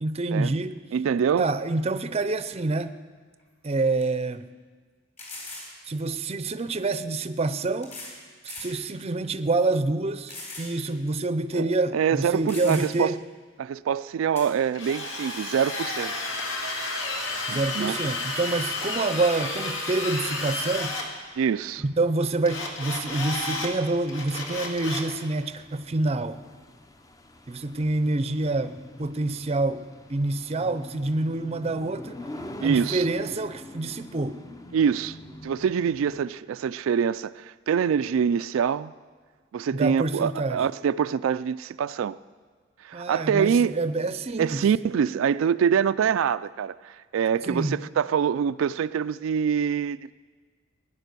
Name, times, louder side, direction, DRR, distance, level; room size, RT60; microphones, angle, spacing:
voice 1, 0.0-0.8 1.4-3.0 3.6-4.5 5.9-8.0 8.4-13.2 17.5-21.0 21.8-26.4 27.5-32.2 32.6-34.4 39.7-40.7 42.9-44.6 47.5-47.8, right 2 dB, 30° right, 0.6 m, -27 dB
voice 2, 0.9-1.5 11.5-11.7 11.9-13.1 13.6-16.1 17.5-18.0 21.4-21.8 32.6-33.0 34.7-35.2 35.4-38.9 39.5-42.2 42.8-43.8 44.4-50.1, right 7 dB, 90° right, 0.3 m, -25 dB
sound 1, 3.4-3.5 4.0-4.1 5.2-5.7 6.8-6.9 7.8-8.2 8.5-8.7 9.3-9.4 10.3-10.7 11.1-11.2 12.1-12.2 12.5-13.1 14.3-14.5, left 2 dB, 35° left, 4.3 m, -40 dB
Drill, 14.7-21.1 22.5-23.7 24.1-25.1, left 2 dB, 70° left, 2.0 m, -31 dB
sound 2, 20.8-36.2, left 1 dB, 15° left, 0.6 m, -45 dB
17.5 x 9.9 x 6.8 m
head